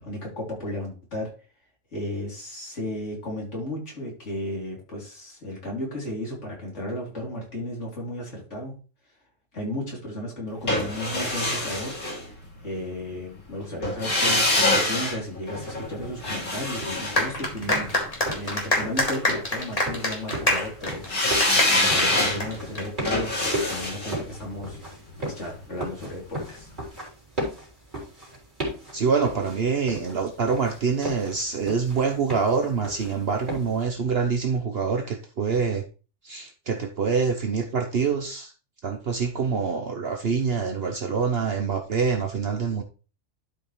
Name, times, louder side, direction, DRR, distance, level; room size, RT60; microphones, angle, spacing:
voice 1, 0.0-1.3 1.9-8.7 9.5-11.9 12.6-17.9 18.3-21.1 21.7-23.3 23.7-24.8 25.2-26.7, left 1 dB, 70° left, -2 dB, 3.4 m, -34 dB
sound 1, 10.7-12.8 13.8-18.1 21.1-26.1 26.4-26.5, left 1 dB, 90° left, 3.2 m, -26 dB
sound 2, 15.5-33.8, right 1 dB, 40° right, 3.7 m, -37 dB
sound 3, 17.2-23.1, left 1 dB, 30° left, 2.0 m, -26 dB
voice 2, 28.9-35.9 36.2-38.5 38.8-42.8, right 5 dB, 55° right, 5 dB, 1.0 m, -25 dB
11.5 x 5.3 x 3.1 m, 0.35 s
omnidirectional pair, 1.3 m